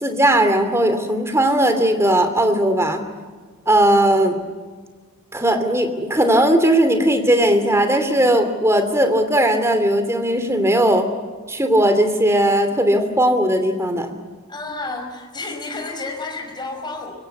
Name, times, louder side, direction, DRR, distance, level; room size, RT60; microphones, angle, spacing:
voice 1, 0.0-3.0 3.7-4.4 5.3-11.1 11.5-14.1, right 1 dB, 10° right, 7 dB, 2.8 m, -17 dB
voice 2, 14.5-17.1, left 3 dB, 20° left, 2 dB, 5.6 m, -30 dB
24.5 x 23.5 x 8.3 m, 1.5 s
head